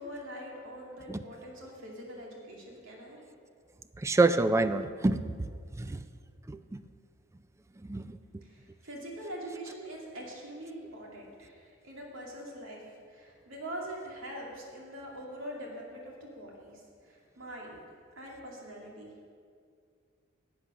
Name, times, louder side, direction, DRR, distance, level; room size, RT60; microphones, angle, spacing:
voice 1, 0.0-3.2 8.4-17.8 18.2-19.1, right 1 dB, 70° right, -2 dB, 2.4 m, -43 dB
voice 2, 4.0-5.5 5.8-6.0 6.5-6.8 7.9-8.2, right 2 dB, 15° right, 12 dB, 0.3 m, -27 dB
10.5 x 8.1 x 6.0 m, 2.2 s
head